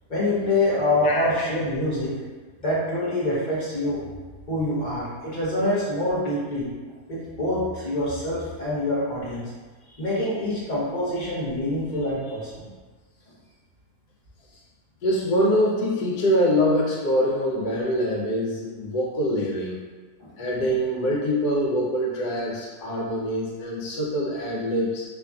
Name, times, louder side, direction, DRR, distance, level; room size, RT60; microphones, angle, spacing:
voice 1, 0.1-2.2 2.6-4.1 4.5-6.7 7.1-9.4 9.8-12.7 20.2-20.3, left 1 dB, 55° left, -8 dB, 0.5 m, -25 dB
voice 2, 15.0-19.8 20.4-25.0, equal, 85° left, -3 dB, 1.2 m, -24 dB
2.9 x 2.5 x 2.3 m, 1.3 s
omnidirectional pair, 1.7 m